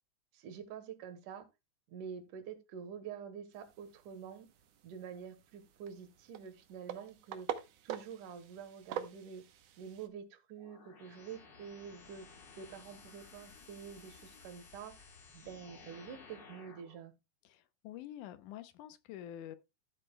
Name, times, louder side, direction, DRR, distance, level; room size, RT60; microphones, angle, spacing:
voice 1, 0.3-1.5 1.9-4.5 4.8-9.4 9.8-12.3 12.6-15.1 15.3-17.1, right 7 dB, 90° right, 2.7 m, -47 dB
sound 1, 3.5-10.1, right 10 dB, 65° right, 1.8 m, -46 dB
sound 2, 10.6-17.0, left 4 dB, 45° left, 1.8 m, -56 dB
voice 2, 17.5-19.6, left 11 dB, 85° left, 2.2 m, -47 dB
14.0 x 7.9 x 2.2 m
omnidirectional pair, 3.6 m